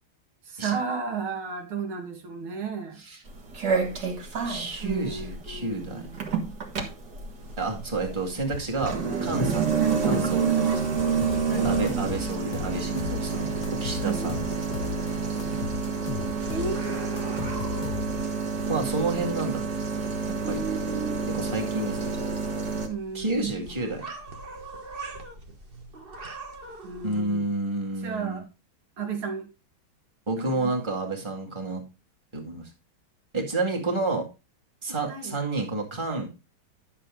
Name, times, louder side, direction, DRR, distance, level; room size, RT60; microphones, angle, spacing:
voice 1, 0.4-3.0 4.8-6.3 9.8-10.0 10.5-11.0 11.4-11.8 14.0-14.3 15.2-15.8 16.5-17.4 20.4-21.2 22.9-23.7 24.0-24.1 26.8-27.4 28.0-28.4 29.0-29.5 30.4-30.7 35.1-35.3, right 5 dB, 80° right, 2.7 m, -34 dB
sound 1, 3.3-22.9, right 5 dB, 55° right, 2.3 m, -28 dB
voice 2, 4.4-6.0 7.6-9.7 10.1-10.9 11.5-13.5 13.8-14.4 18.7-19.6 20.3-20.6 21.3-22.2 23.1-24.1 27.0-28.4 30.3-31.8 32.3-32.7 33.3-34.3 34.8-36.3, right 2 dB, 15° right, 2.1 m, -30 dB
sound 2, 7.3-27.2, right 2 dB, 30° right, 1.3 m, -44 dB
sound 3, 11.2-13.3 13.6-15.1 15.4-18.3, left 11 dB, 75° left, 1.3 m, -36 dB
11.0 x 6.8 x 3.8 m
omnidirectional pair, 2.3 m